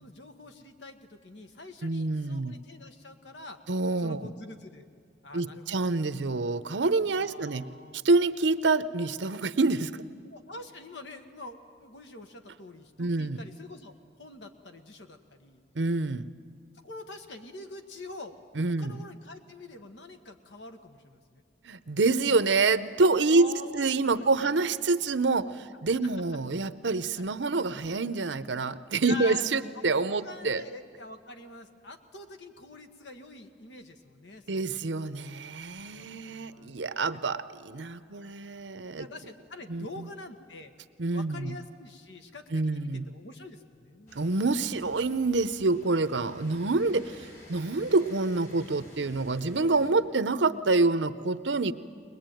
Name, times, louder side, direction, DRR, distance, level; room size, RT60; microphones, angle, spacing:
voice 1, 0.0-3.6 4.0-4.9 5.2-6.0 7.1-8.0 10.3-13.9 14.2-15.6 16.8-18.4 18.8-21.4 23.3-24.5 27.0-27.3 29.1-29.4 29.7-34.8 35.9-36.7 37.1-37.2 37.8-40.7 41.1-44.2 51.7-51.8, left 2 dB, 80° left, 6 dB, 1.7 m, -46 dB
voice 2, 1.8-2.5 3.7-4.2 5.3-7.7 8.0-10.1 13.0-13.4 15.7-16.3 18.6-19.0 21.6-30.6 34.5-39.1 39.7-40.1 41.0-41.5 42.5-43.0 44.1-51.7, right 3 dB, 85° right, 13 dB, 0.8 m, -27 dB
sound 1, 44.1-49.9, left 1 dB, 50° left, 4.4 m, -51 dB
21.5 x 21.0 x 9.2 m, 2.2 s
head